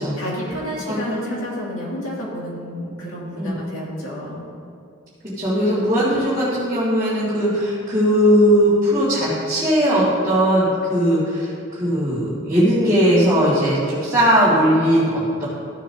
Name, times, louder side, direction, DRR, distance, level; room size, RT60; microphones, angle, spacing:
voice 1, 0.2-4.5, equal, 75° left, -5 dB, 2.4 m, -30 dB
voice 2, 0.9-1.3 3.4-3.5 5.2-15.5, equal, 15° right, -12 dB, 2.0 m, -19 dB
14.0 x 7.3 x 2.8 m, 2.5 s
head